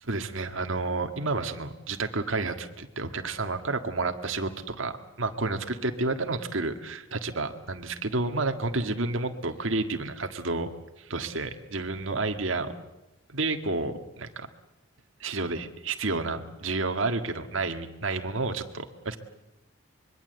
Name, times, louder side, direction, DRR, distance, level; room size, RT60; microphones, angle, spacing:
voice 1, 0.0-10.7 11.1-12.7 13.3-14.5 15.2-19.2, right 3 dB, 70° right, 6 dB, 1.7 m, -30 dB
25.0 x 22.5 x 7.9 m, 0.95 s
head